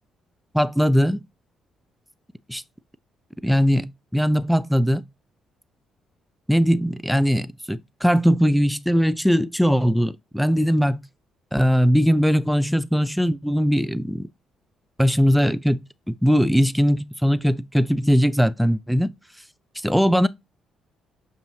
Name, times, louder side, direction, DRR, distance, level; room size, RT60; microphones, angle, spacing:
voice 1, 0.5-1.2 2.5-2.6 3.4-3.9 4.1-5.0 6.5-11.0 11.5-14.3 15.0-19.1 19.8-20.3, equal, ahead, 0.4 m, -20 dB
7.1 x 2.7 x 2.7 m
hypercardioid pair, 45°, 0 cm